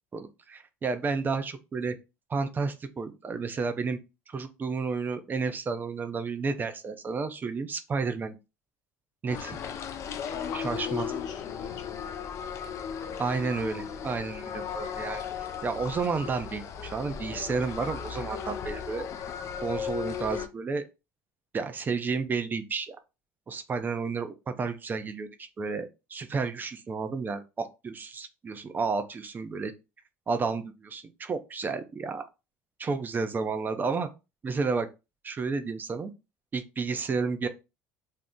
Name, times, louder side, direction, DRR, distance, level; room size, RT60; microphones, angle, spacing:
voice 1, 0.1-2.0 2.3-4.0 4.3-8.3 9.2-9.6 10.5-11.1 13.2-15.2 15.6-19.1 19.6-20.8 21.5-23.0 23.5-29.7 30.3-32.2 32.8-34.1 34.4-34.9 35.2-36.1 36.5-37.5, right 4 dB, 25° right, 0.5 m, -31 dB
sound 1, 9.3-20.5, left 7 dB, 45° left, 0.4 m, -36 dB
voice 2, 9.5-9.8 10.2-12.1, left 8 dB, 65° left, 0.8 m, -44 dB
2.6 x 2.0 x 3.6 m
supercardioid pair, 95°, 7 cm